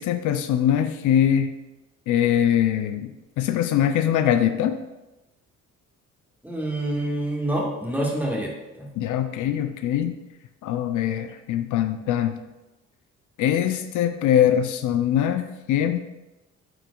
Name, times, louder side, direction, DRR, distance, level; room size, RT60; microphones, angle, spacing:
voice 1, 0.0-1.5 2.1-3.1 3.4-4.8 9.0-10.2 10.6-12.3 13.4-16.0, left 10 dB, 80° left, 9 dB, 0.5 m, -22 dB
voice 2, 6.4-8.9, right 1 dB, 5° right, -2 dB, 1.6 m, -27 dB
8.7 x 4.6 x 2.3 m, 1.0 s
cardioid pair, 90°, 30 cm